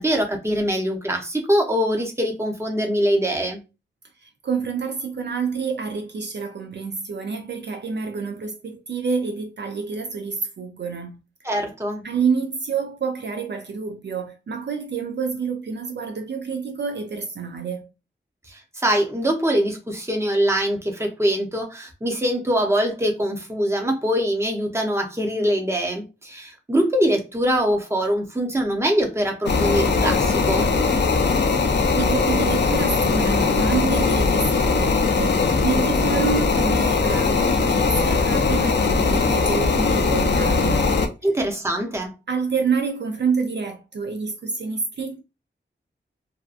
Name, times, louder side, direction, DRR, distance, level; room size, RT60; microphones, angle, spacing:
voice 1, 0.0-3.6 11.4-12.0 18.5-30.7 41.2-42.1, equal, 15° right, 0.6 m, -23 dB
voice 2, 4.2-11.2 12.0-17.9 31.5-41.0 42.3-45.2, right 5 dB, 60° right, 0.4 m, -28 dB
sound 1, 29.5-41.1, left 4 dB, 60° left, 0.5 m, -20 dB
2.6 x 2.2 x 2.4 m
wide cardioid pair, 100°, 20 cm